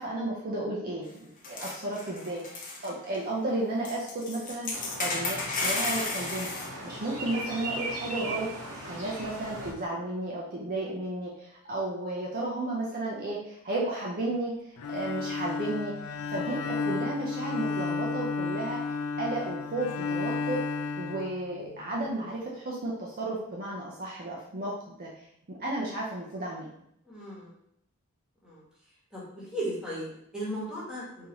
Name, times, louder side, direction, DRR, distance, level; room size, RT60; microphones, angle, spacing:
voice 1, 0.0-6.5 6.8-15.9 16.3-20.6 21.0-26.7, right 2 dB, 40° right, -4 dB, 0.5 m, -33 dB
sound 1, 1.4-2.9 3.1-3.2 3.9-6.7, left 3 dB, 35° left, 0.7 m, -32 dB
sound 2, 4.7-9.7, right 1 dB, 80° right, 1.4 m, -38 dB
Bowed string instrument, 14.8-21.9, left 4 dB, 70° left, 0.4 m, -33 dB
voice 2, 27.1-27.5 28.4-28.6 29.1-31.3, right 1 dB, 5° right, -7 dB, 1.2 m, -36 dB
3.8 x 2.7 x 2.9 m, 0.75 s
head